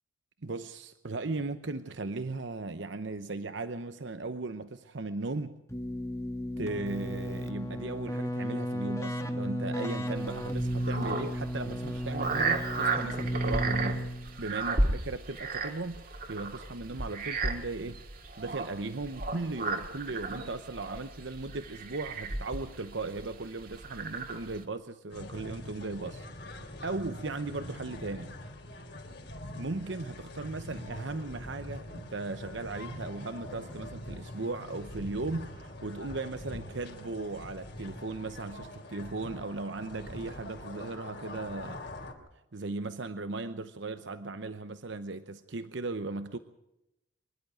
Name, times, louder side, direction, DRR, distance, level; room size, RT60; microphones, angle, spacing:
voice 1, 0.4-5.6 6.6-14.1 14.4-18.0 18.4-26.3 26.8-28.3 29.6-41.8 42.5-46.4, right 3 dB, 65° right, 10 dB, 0.9 m, -37 dB
Keyboard (musical), 5.7-14.4, equal, 15° left, 1.5 m, -34 dB
sound 1, 10.2-24.6, right 3 dB, 45° right, 2.2 m, -34 dB
sound 2, 25.1-42.1, left 1 dB, 55° left, 3.6 m, -44 dB
25.0 x 11.5 x 9.3 m, 0.88 s
head